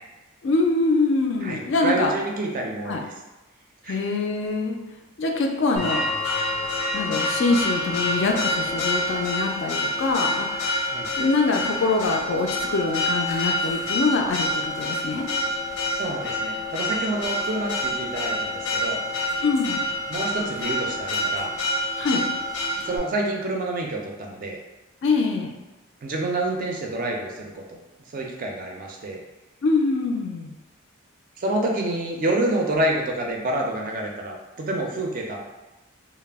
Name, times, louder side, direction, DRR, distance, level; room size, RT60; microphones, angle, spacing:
voice 1, 0.4-2.1 2.9-3.0 3.9-4.8 5.2-6.1 6.9-10.8 11.2-15.3 19.4-19.8 22.0-22.3 25.0-25.5 29.6-30.5, left 3 dB, 55° left, 2 dB, 0.3 m, -24 dB
voice 2, 1.4-3.1 3.8-4.0 10.9-11.1 15.9-19.0 20.1-21.5 22.8-24.6 26.0-27.8 28.1-29.2 31.4-35.4, right 2 dB, 40° right, 0 dB, 0.4 m, -28 dB
Church bell, 5.8-23.0, left 1 dB, 85° left, 0.7 m, -27 dB
2.3 x 2.0 x 3.4 m, 1.1 s
head